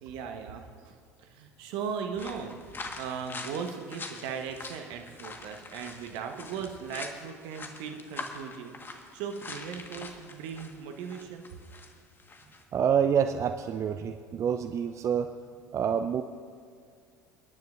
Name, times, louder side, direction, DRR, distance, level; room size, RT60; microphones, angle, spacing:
voice 1, 0.0-11.4, right 6 dB, 60° right, 5 dB, 1.2 m, -38 dB
sound 1, 2.2-11.9 12.2-12.6, left 3 dB, 25° left, 1.5 m, -43 dB
voice 2, 12.7-15.3 15.7-16.2, right 8 dB, 35° right, 9 dB, 0.5 m, -27 dB
29.0 x 10.5 x 2.6 m, 2.2 s
figure-of-eight pair, 70°, 9 cm